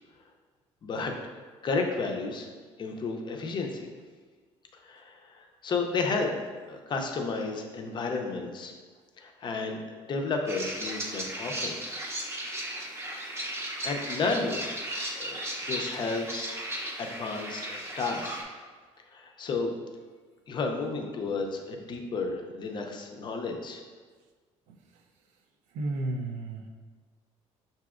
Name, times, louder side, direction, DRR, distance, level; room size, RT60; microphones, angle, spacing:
voice 1, 0.8-1.1 1.6-2.5 2.8-3.9 4.7-6.4 6.7-8.7 9.2-11.8 12.7-12.9 13.8-14.7 15.2-16.5 17.0-18.4 19.1-19.8 20.5-23.8, left 4 dB, 40° left, 3 dB, 0.5 m, -32 dB
sound 1, 10.5-18.4, right 1 dB, 20° right, 0.7 m, -36 dB
voice 2, 25.7-26.7, right 2 dB, 80° right, 3 dB, 0.5 m, -32 dB
5.8 x 2.7 x 2.4 m, 1.4 s
cardioid pair, 115°, 12 cm